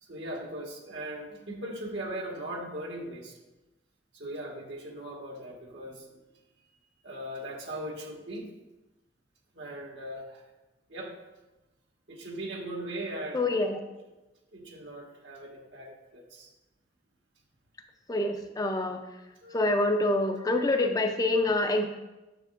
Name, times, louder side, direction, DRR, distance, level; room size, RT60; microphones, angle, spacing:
voice 1, 0.0-3.4 4.1-6.2 7.0-8.5 9.5-10.4 10.9-11.2 12.1-13.7 14.5-16.5 19.4-19.6 20.1-20.2 20.7-20.9 21.3-21.4, right 1 dB, 75° right, 0 dB, 1.4 m, -39 dB
voice 2, 13.3-13.8 18.1-19.0 19.5-21.9, left 2 dB, 20° left, 6 dB, 0.4 m, -26 dB
9.0 x 7.3 x 2.5 m, 1.1 s
head